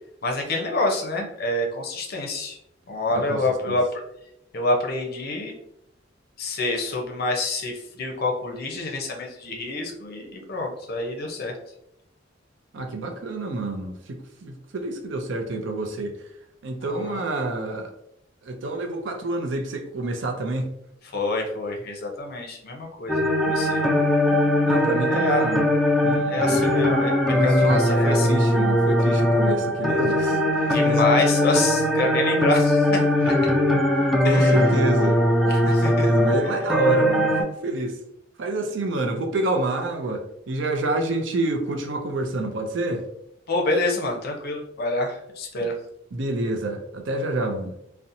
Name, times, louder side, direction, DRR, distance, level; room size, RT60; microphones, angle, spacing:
voice 1, 0.2-2.6 2.9-3.8 4.5-5.5 6.4-11.5 16.8-17.2 21.1-23.8 25.1-25.5 26.3-28.5 30.7-33.3 34.2-34.6 35.5-36.1 43.5-45.7, left 2 dB, 55° left, 0.6 m, -27 dB
voice 2, 3.1-3.8 12.7-16.1 16.6-17.9 18.4-20.7 24.6-25.7 26.0-26.7 27.3-30.4 30.8-31.1 33.2-33.7 34.2-35.2 35.6-38.0 38.4-43.0 45.6-45.7 46.1-47.7, right 2 dB, 70° right, 0.5 m, -28 dB
sound 1, 23.1-37.4, left 1 dB, ahead, 0.3 m, -20 dB
2.7 x 2.1 x 2.5 m
head